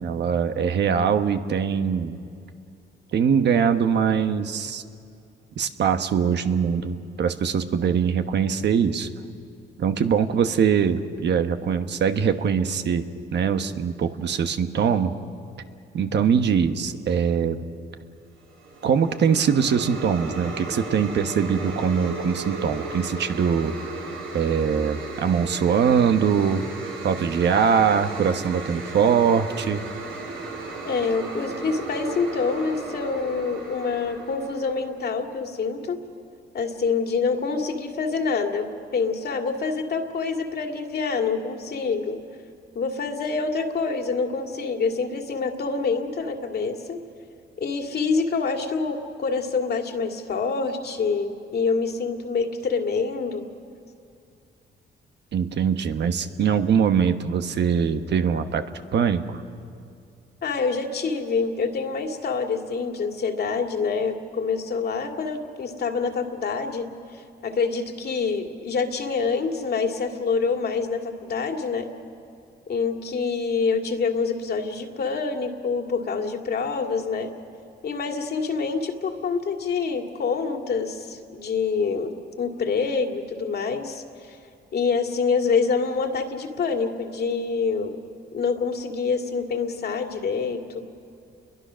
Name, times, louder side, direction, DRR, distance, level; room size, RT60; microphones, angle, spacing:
voice 1, 0.0-2.1 3.1-4.8 5.6-9.1 9.8-13.0 13.3-15.1 15.9-17.6 18.8-23.7 24.3-26.7 27.0-29.8 55.3-58.6 58.9-59.4, right 7 dB, 60° right, 8 dB, 1.2 m, -22 dB
sound 1, 18.4-34.9, right 3 dB, 85° right, 4.3 m, -35 dB
voice 2, 30.8-36.0 36.5-38.7 38.9-42.2 42.7-47.0 47.6-53.5 60.4-66.9 67.4-71.9 72.7-77.3 77.8-84.4 84.7-88.0 88.3-90.8, left 4 dB, 55° left, 4 dB, 2.3 m, -26 dB
29.5 x 22.0 x 6.3 m, 2.4 s
cardioid pair, 90°, 20 cm